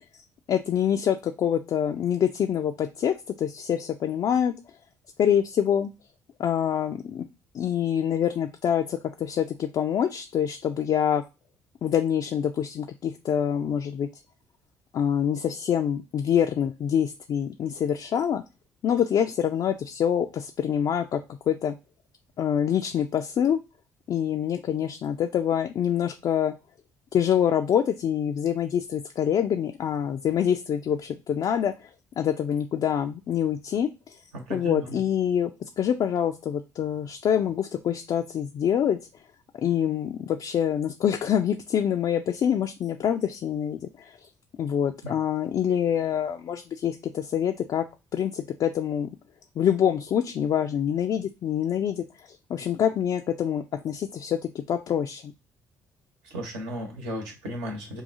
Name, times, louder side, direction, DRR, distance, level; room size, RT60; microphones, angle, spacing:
voice 1, 0.5-4.5 5.2-5.9 6.4-7.3 7.5-11.2 11.8-14.1 14.9-18.4 18.8-21.2 21.5-21.8 22.4-23.6 24.1-26.5 27.1-31.7 32.2-33.9 34.5-35.5 35.8-39.0 39.6-44.1 44.6-47.8 48.1-49.1 49.6-52.0 52.5-55.3, left 9 dB, 45° left, 4 dB, 0.4 m, -25 dB
voice 2, 34.3-35.0 45.0-45.2 56.3-58.0, equal, 70° right, 2 dB, 1.1 m, -35 dB
5.5 x 2.3 x 2.6 m, 0.27 s
figure-of-eight pair, 45°, 9 cm